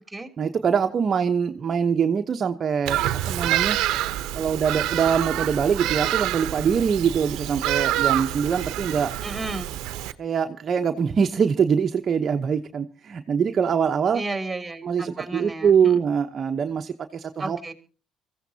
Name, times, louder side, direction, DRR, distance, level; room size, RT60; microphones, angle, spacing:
voice 1, 0.4-3.8 4.3-9.1 10.2-14.2 14.8-17.7, right 7 dB, 45° right, 5 dB, 0.9 m, -23 dB
Bird vocalization bird call bird song, 2.9-10.1, right 13 dB, 75° right, 0.8 m, -27 dB
voice 2, 9.2-9.7 14.1-16.0 17.4-17.7, right 2 dB, 15° right, 7 dB, 3.0 m, -32 dB
24.0 x 15.0 x 2.8 m, 0.35 s
supercardioid pair, 65°, 0 cm